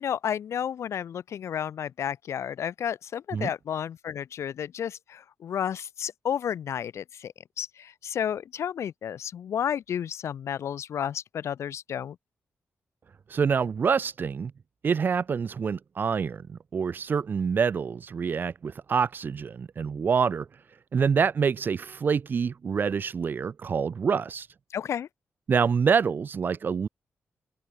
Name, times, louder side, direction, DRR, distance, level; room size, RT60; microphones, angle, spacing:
voice 1, 0.0-12.2 24.7-25.1, left 9 dB, 75° left, 1.2 m, -32 dB
voice 2, 13.3-14.5 14.8-16.4 16.7-20.4 20.9-24.5 25.5-26.9, right 6 dB, 45° right, 0.5 m, -26 dB
wide cardioid pair, 125°, 5 cm